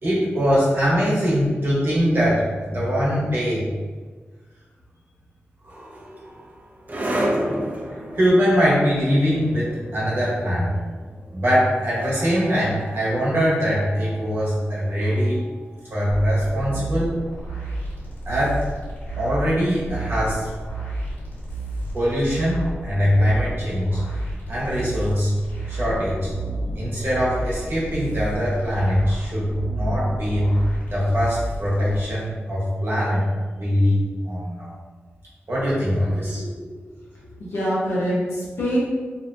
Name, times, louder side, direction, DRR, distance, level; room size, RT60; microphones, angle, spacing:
voice 1, 0.0-3.7 5.6-6.4 7.9-10.8 11.3-15.4 15.9-17.1 18.3-18.6 19.2-20.5 21.9-24.0 24.5-25.3 25.7-26.3 26.7-30.5 30.9-34.7 35.5-36.4, equal, 60° right, -7 dB, 1.0 m, -22 dB
sound 1, 5.7-16.8, right 1 dB, 35° right, 0.5 m, -33 dB
sound 2, 16.1-32.0, right 2 dB, 45° left, 1.3 m, -31 dB
voice 2, 36.3-36.8 37.1-38.8, equal, 80° left, -7 dB, 0.8 m, -26 dB
2.7 x 2.1 x 2.5 m, 1.4 s
cardioid pair, 45°, 5 cm